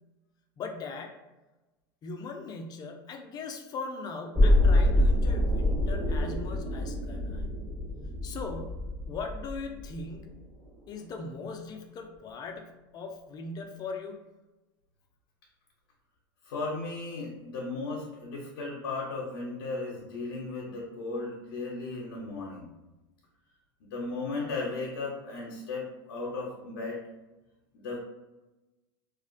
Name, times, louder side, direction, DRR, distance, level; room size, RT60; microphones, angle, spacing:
voice 1, 0.6-1.2 2.0-7.4 8.2-10.3 10.9-14.2, left 4 dB, 35° left, 3 dB, 0.4 m, -39 dB
sound 1, 4.3-10.3 10.6-10.7, left 1 dB, 10° right, 0.8 m, -26 dB
voice 2, 16.4-22.7 23.9-27.0 27.7-28.0, left 3 dB, 85° left, -3 dB, 0.5 m, -36 dB
2.4 x 2.1 x 2.4 m, 1.1 s
supercardioid pair, 110°, 12 cm